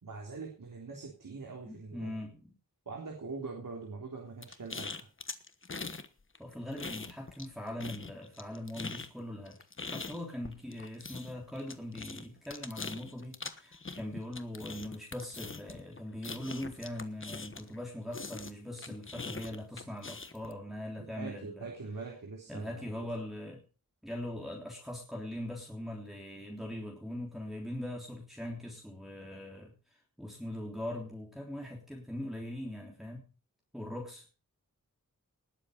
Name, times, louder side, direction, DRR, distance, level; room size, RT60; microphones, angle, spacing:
voice 1, 0.0-2.1 2.9-5.1 21.0-23.1, right 4 dB, 70° right, 0 dB, 3.6 m, -43 dB
voice 2, 1.7-2.5 6.4-9.6 9.8-21.7 22.5-23.6 24.0-29.7 30.2-33.3 33.7-34.3, left 1 dB, ahead, -3 dB, 3.5 m, -41 dB
sound 1, 4.4-6.1 6.3-7.5 7.8-17.8 18.1-20.5, left 4 dB, 40° left, 1.2 m, -42 dB
19.5 x 7.7 x 5.3 m, 0.36 s
wide cardioid pair, 85°, 34 cm